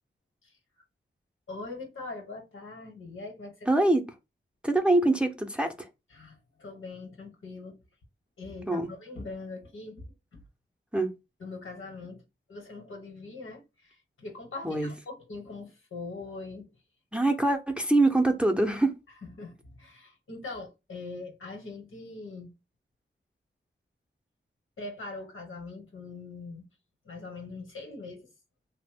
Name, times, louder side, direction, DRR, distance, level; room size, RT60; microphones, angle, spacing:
voice 1, 1.5-3.7 6.1-7.8 8.4-10.1 11.4-12.2 12.5-16.7 19.2-22.5 24.8-26.7 27.0-28.3, left 3 dB, 85° left, 1.0 m, -42 dB
voice 2, 3.7-4.0 4.6-5.9 8.7-8.9 10.9-11.1 14.6-14.9 17.1-18.9, right 2 dB, 5° right, 0.5 m, -24 dB
2.9 x 2.0 x 3.4 m
wide cardioid pair, 60°, 20 cm